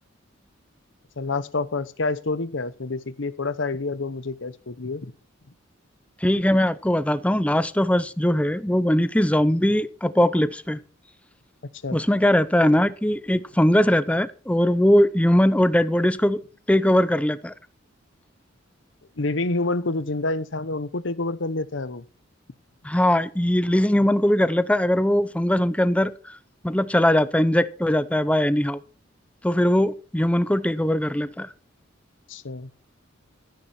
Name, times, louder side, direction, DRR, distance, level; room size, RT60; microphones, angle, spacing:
voice 1, 1.2-5.1 11.8-12.0 19.2-22.0 32.3-32.7, left 3 dB, 75° left, 0.9 m, -28 dB
voice 2, 6.2-10.8 11.9-16.4 16.7-17.5 22.8-26.3 26.6-28.8 29.4-31.5, left 1 dB, 5° left, 0.6 m, -20 dB
13.5 x 10.5 x 4.4 m
head